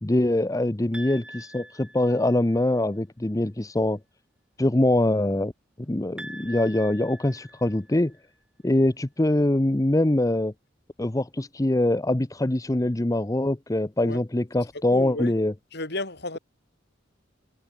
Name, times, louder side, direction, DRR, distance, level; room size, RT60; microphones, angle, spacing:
voice 1, 0.0-4.0 4.6-5.5 5.9-8.1 8.6-10.5 11.0-15.5, left 1 dB, 15° left, 0.7 m, -23 dB
sound 1, 0.9-2.6 6.2-8.2, right 1 dB, 5° right, 3.5 m, -44 dB
voice 2, 14.9-15.3 15.7-16.4, left 2 dB, 55° left, 5.4 m, -32 dB
head